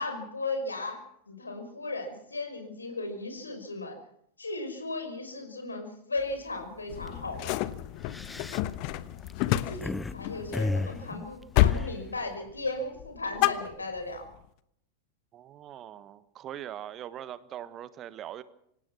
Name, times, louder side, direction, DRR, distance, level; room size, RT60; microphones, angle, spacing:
voice 1, 0.0-4.0 4.4-7.7 9.4-14.3, left 2 dB, 80° left, 6 dB, 5.6 m, -36 dB
sound 1, 6.2-6.5 6.9-7.1 7.8-10.1 10.5-12.3, left 2 dB, 10° left, 0.8 m, -34 dB
sound 2, 6.9-11.1 11.5-11.9 12.2-12.7 13.0-14.2, left 15 dB, 45° left, 1.2 m, -29 dB
voice 2, 15.3-18.4, right 11 dB, 30° right, 15 dB, 1.4 m, -41 dB
26.0 x 18.0 x 6.1 m, 0.72 s
figure-of-eight pair, 90°, 0 cm